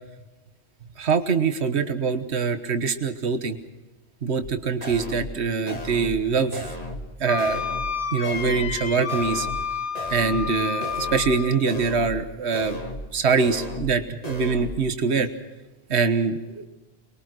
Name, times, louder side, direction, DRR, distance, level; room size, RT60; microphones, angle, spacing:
voice 1, 1.0-3.6 4.2-6.7 7.2-7.6 8.1-9.5 10.1-12.8 13.1-15.3 15.9-16.7, right 5 dB, 75° right, 9 dB, 1.6 m, -24 dB
sound 1, 4.4-4.5 4.8-5.4 5.7-6.2 6.5-7.1 7.4-8.0 8.2-8.8 9.1-9.7 10.0-10.5 10.8-11.4 11.7-12.2 12.5-13.1 13.4-14.0 14.2-14.8, left 1 dB, 35° left, 2.4 m, -35 dB
Wind instrument woodwind instrument, 7.3-11.6, left 6 dB, 90° left, 1.5 m, -30 dB
25.5 x 22.0 x 6.2 m, 1.1 s
omnidirectional pair, 1.1 m